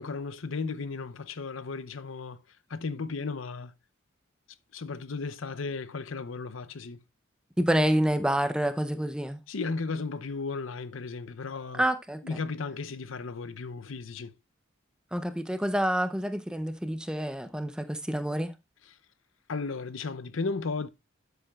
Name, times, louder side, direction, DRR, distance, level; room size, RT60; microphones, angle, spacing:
voice 1, 0.0-2.4 2.7-3.7 4.7-7.0 9.5-11.8 12.2-14.3 19.5-20.9, left 4 dB, 75° left, 0.7 m, -35 dB
voice 2, 7.6-9.4 11.7-12.4 15.1-18.5, right 1 dB, 5° right, 0.7 m, -28 dB
11.5 x 8.0 x 2.3 m
head